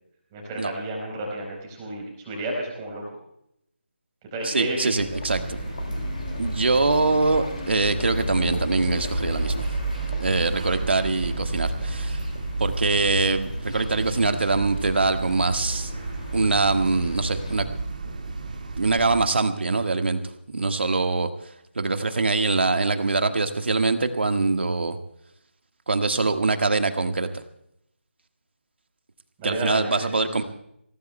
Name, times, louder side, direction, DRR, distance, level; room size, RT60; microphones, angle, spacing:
voice 1, 0.3-3.0 4.3-4.9 29.4-30.1, right 1 dB, 10° right, -2 dB, 4.1 m, -31 dB
voice 2, 4.4-5.6 6.4-9.7 10.2-12.2 12.6-15.9 16.3-17.7 18.7-20.2 20.5-21.3 21.7-25.0 25.9-27.3 29.4-30.4, right 3 dB, 60° right, 7 dB, 1.6 m, -23 dB
sound 1, 5.0-17.6, left 2 dB, 35° left, 2.3 m, -34 dB
sound 2, 5.3-19.4, right 3 dB, 40° right, 2.0 m, -32 dB
28.0 x 17.0 x 2.2 m, 0.75 s
figure-of-eight pair, 175°, 7 cm